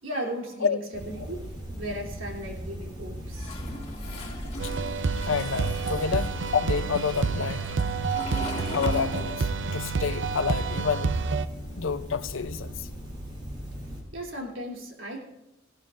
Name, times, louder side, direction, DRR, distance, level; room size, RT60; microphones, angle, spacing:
voice 1, 0.0-3.6 14.1-15.2, equal, 85° right, 3.2 m, -36 dB
sound 1, 0.9-14.0, equal, 25° right, 3.5 m, -39 dB
Toilet flush, 3.3-9.8 10.0-11.6, left 2 dB, 35° left, 2.9 m, -40 dB
sound 2, 4.6-11.5, right 4 dB, 65° right, 0.6 m, -29 dB
voice 2, 5.3-7.7 8.7-11.2 11.8-12.9, left 6 dB, 90° left, 0.6 m, -29 dB
18.5 x 16.0 x 2.6 m
head